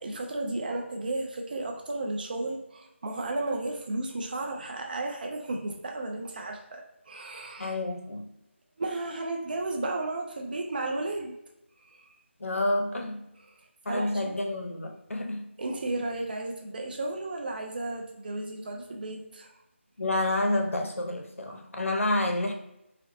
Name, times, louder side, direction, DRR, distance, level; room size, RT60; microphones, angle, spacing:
voice 1, 0.0-7.7 8.8-11.4 11.9-12.1 13.9-14.3 15.6-19.5, right 2 dB, 45° right, 1 dB, 0.3 m, -33 dB
voice 2, 7.6-8.3 12.4-13.2 13.9-15.5 20.0-22.5, left 1 dB, 90° left, 3 dB, 0.5 m, -29 dB
2.7 x 2.0 x 2.5 m, 0.85 s
figure-of-eight pair, 165°, 7 cm